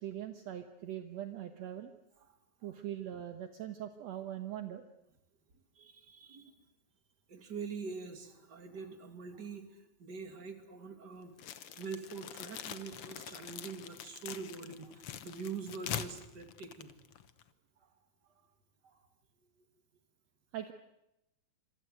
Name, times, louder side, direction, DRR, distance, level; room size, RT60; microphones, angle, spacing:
voice 1, 0.0-1.9 2.6-4.9 20.5-20.7, right 11 dB, 65° right, 7 dB, 1.8 m, -41 dB
voice 2, 2.2-2.7 5.7-6.5 7.3-11.3 11.7-17.0 18.8-19.0, right 5 dB, 30° right, 7 dB, 2.6 m, -44 dB
sound 1, 11.4-17.5, left 9 dB, 85° left, 1.2 m, -44 dB
27.0 x 23.0 x 8.0 m, 0.86 s
omnidirectional pair, 4.4 m